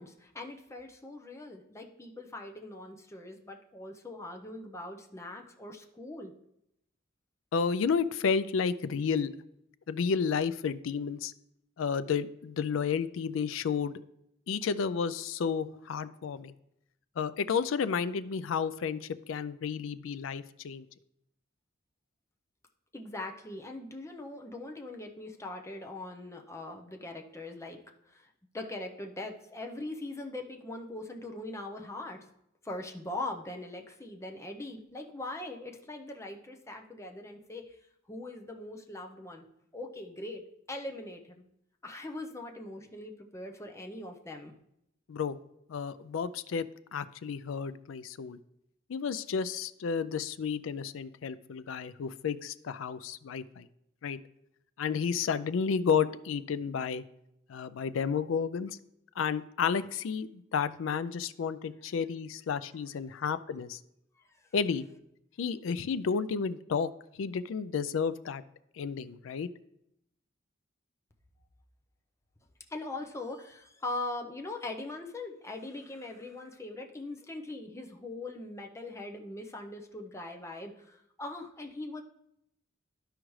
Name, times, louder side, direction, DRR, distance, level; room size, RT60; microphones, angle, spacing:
voice 1, 0.0-6.3 22.9-27.8 28.1-28.3 28.5-32.3 32.6-37.8 38.1-39.4 39.7-41.4 41.8-44.5 72.7-82.0, left 2 dB, 15° left, 2 dB, 0.7 m, -41 dB
voice 2, 7.5-9.3 9.9-11.3 11.8-14.0 14.5-16.5 17.2-20.9 45.1-45.4 45.7-46.7 46.9-48.4 48.9-53.7 54.0-54.2 54.8-57.0 57.5-58.8 59.2-63.8 64.5-64.9 65.4-66.9 67.1-68.4 68.7-69.5, left 6 dB, 70° left, 14 dB, 0.4 m, -31 dB
12.5 x 4.9 x 3.1 m, 0.80 s
head